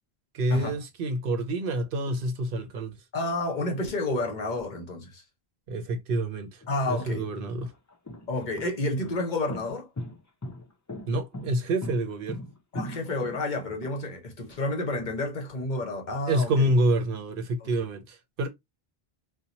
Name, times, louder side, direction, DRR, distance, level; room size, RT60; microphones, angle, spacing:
voice 1, 0.3-3.0 5.7-6.6 6.9-7.7 11.1-12.4 16.3-18.5, right 1 dB, 65° right, 0.7 m, -27 dB
voice 2, 3.1-5.2 6.7-7.3 8.3-9.9 12.7-16.7 17.6-17.9, left 2 dB, 55° left, 0.8 m, -30 dB
sound 1, 6.6-6.7 7.4-13.9, left 1 dB, 30° left, 0.4 m, -38 dB
2.7 x 2.1 x 2.8 m
omnidirectional pair, 1.0 m